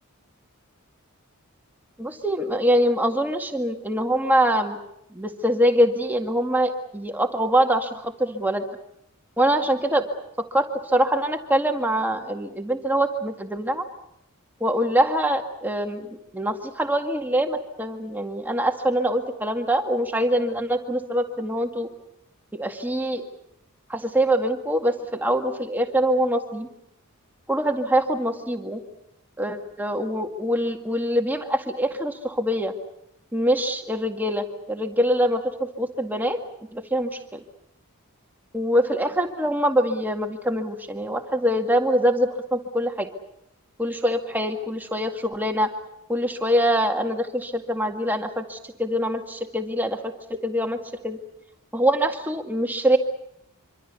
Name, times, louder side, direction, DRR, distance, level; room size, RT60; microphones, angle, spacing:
voice 1, 2.0-4.8 5.1-8.6 9.4-10.1 10.4-13.9 14.6-21.9 22.5-23.2 23.9-26.7 27.5-28.8 29.4-32.7 33.3-36.4 36.7-37.4 38.5-43.1 43.8-45.7 46.1-50.1 50.4-50.8 51.0-51.2 51.7-53.0, equal, 10° right, 4 dB, 2.0 m, -24 dB
25.5 x 25.5 x 7.0 m, 0.77 s
head